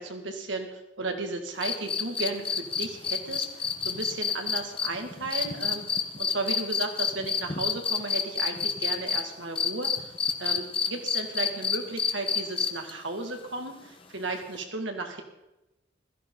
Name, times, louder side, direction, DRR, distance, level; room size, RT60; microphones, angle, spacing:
voice 1, 0.0-5.9 6.2-10.1 10.4-15.2, right 3 dB, 80° right, 4 dB, 2.1 m, -34 dB
sound 1, 1.6-9.2 9.6-12.9 14.5-14.6, left 6 dB, 30° left, 1.0 m, -28 dB
16.0 x 14.0 x 3.9 m, 0.95 s
head